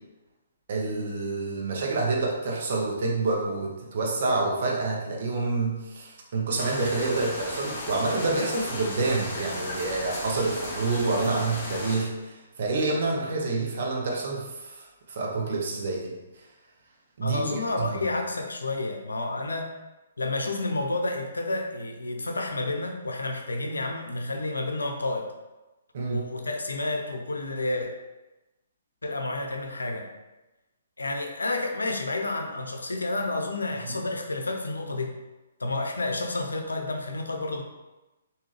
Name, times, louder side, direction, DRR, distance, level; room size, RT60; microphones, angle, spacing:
voice 1, 0.7-16.1 17.2-18.0 25.9-26.2, right 3 dB, 55° right, -1 dB, 0.9 m, -28 dB
sound 1, 6.6-12.0, left 1 dB, 35° left, 1.3 m, -35 dB
voice 2, 17.2-19.7 20.2-25.3 26.1-27.9 29.0-30.1 31.0-35.1 35.6-37.6, left 2 dB, 90° left, 4 dB, 0.6 m, -30 dB
3.7 x 2.7 x 3.2 m, 1.1 s
hypercardioid pair, 135°, 0 cm